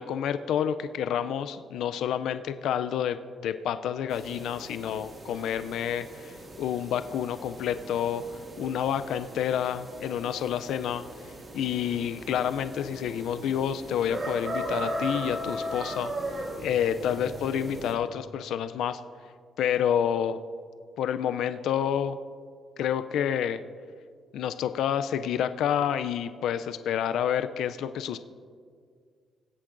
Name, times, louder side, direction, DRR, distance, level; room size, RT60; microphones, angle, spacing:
voice 1, 0.0-8.2 8.6-11.0 11.5-16.1 16.6-19.0 19.6-20.4 21.0-22.2 22.8-23.6 24.3-28.2, left 9 dB, 80° left, 11 dB, 0.3 m, -29 dB
sound 1, 4.1-17.9, right 1 dB, 35° right, 2.1 m, -38 dB
20.0 x 8.3 x 2.5 m, 2.1 s
cardioid pair, 90°, 0 cm